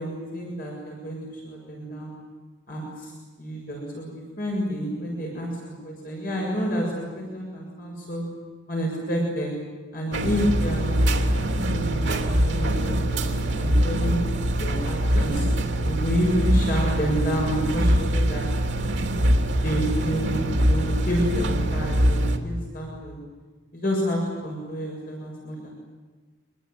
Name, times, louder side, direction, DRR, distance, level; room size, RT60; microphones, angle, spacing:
voice 1, 0.0-2.1 2.7-3.1 3.4-4.1 4.4-8.2 8.7-9.5 9.9-14.2 14.6-15.5 15.8-18.5 19.6-23.1 23.7-25.7, equal, 45° left, -2 dB, 7.1 m, -29 dB
sound 1, 10.1-22.4, right 1 dB, 65° right, 2.9 m, -23 dB
26.5 x 22.5 x 9.5 m, 1.4 s
head